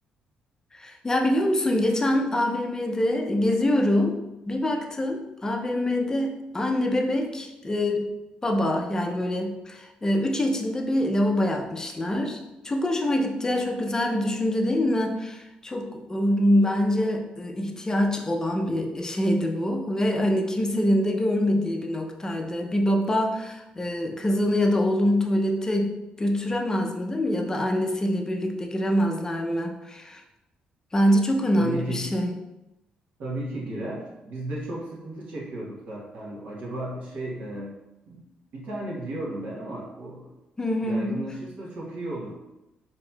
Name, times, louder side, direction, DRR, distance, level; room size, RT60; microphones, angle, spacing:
voice 1, 0.8-4.2 4.5-8.1 8.4-12.4 12.6-30.2 30.9-32.3 40.6-41.2, left 1 dB, 20° left, 3 dB, 0.5 m, -25 dB
voice 2, 31.6-32.1 33.2-37.7 38.1-38.2 38.5-40.3 40.8-42.3, right 1 dB, 65° right, -6 dB, 1.0 m, -34 dB
4.1 x 2.7 x 2.3 m, 0.97 s
cardioid pair, 85°, 3 cm